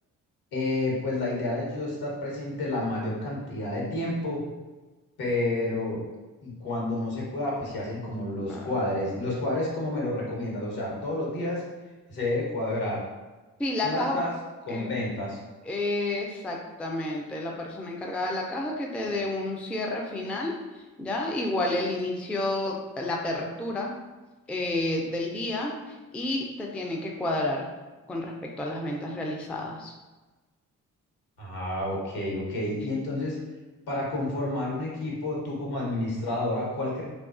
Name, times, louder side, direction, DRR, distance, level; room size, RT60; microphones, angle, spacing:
voice 1, 0.5-4.4 5.2-6.0 6.4-11.6 12.1-13.0 13.8-14.3 14.6-15.4 31.4-33.4 33.9-37.0, left 2 dB, 70° left, -3 dB, 1.0 m, -30 dB
voice 2, 8.4-8.7 13.6-14.2 14.7-15.1 15.6-20.6 21.0-23.9 24.5-27.7 28.1-29.9, left 2 dB, 5° left, 0 dB, 0.3 m, -30 dB
2.3 x 2.3 x 2.4 m, 1.2 s
hypercardioid pair, 40°, 39 cm